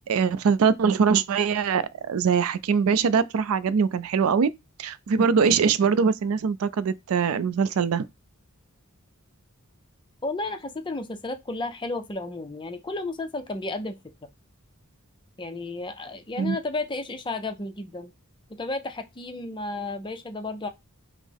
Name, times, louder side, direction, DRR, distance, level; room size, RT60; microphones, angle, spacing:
voice 1, 0.1-4.5 4.8-8.1 16.4-16.6, right 6 dB, 70° right, 0.4 m, -22 dB
voice 2, 10.2-14.0 15.4-18.1 18.6-20.7, left 2 dB, 20° left, 0.5 m, -32 dB
5.3 x 2.0 x 3.4 m
head